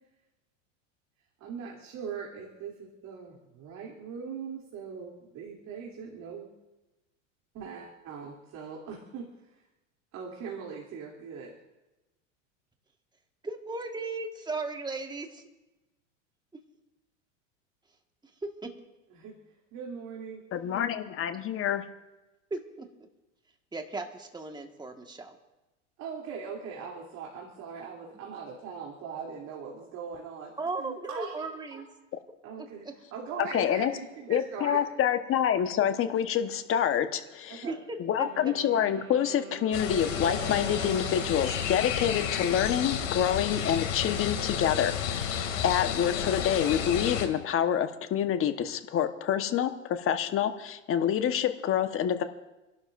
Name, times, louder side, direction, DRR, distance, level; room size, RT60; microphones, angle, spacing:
voice 1, 1.4-6.5 7.5-9.6 10.1-11.5 19.1-19.3 19.7-20.4 26.0-30.5 30.8-31.8 32.4-34.8 37.5-37.8, right 6 dB, 45° right, -2 dB, 3.1 m, -41 dB
voice 2, 13.4-15.4 18.6-18.7 22.5-23.1 23.7-25.4 30.6-31.8 32.6-32.9 37.6-37.8 38.2-38.5, right 3 dB, 10° right, 4 dB, 1.7 m, -36 dB
voice 3, 20.5-21.8 33.4-33.9 34.3-37.6 38.0-52.2, left 9 dB, 35° left, 8 dB, 1.3 m, -27 dB
Wind instrument woodwind instrument, 38.2-43.2, right 9 dB, 80° right, 1.3 m, -44 dB
sound 1, 39.7-47.3, left 8 dB, 70° left, 2.7 m, -31 dB
29.5 x 12.0 x 2.6 m, 1.1 s
hypercardioid pair, 100°, 38 cm